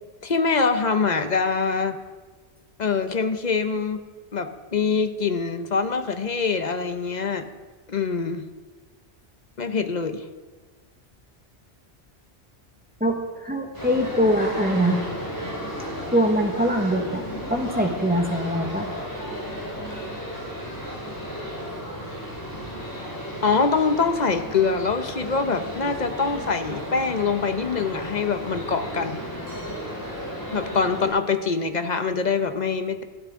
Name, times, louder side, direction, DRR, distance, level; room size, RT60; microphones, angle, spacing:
voice 1, 0.2-2.0 2.8-4.1 4.3-7.5 7.9-8.4 9.6-10.2 23.4-29.2 30.5-33.0, left 5 dB, 45° left, 8 dB, 1.0 m, -24 dB
voice 2, 13.0-15.0 16.1-18.9, equal, 10° right, 2 dB, 1.4 m, -23 dB
sound 1, 13.7-31.1, equal, 20° left, 6.0 m, -34 dB
19.5 x 13.0 x 3.7 m, 1.3 s
omnidirectional pair, 1.1 m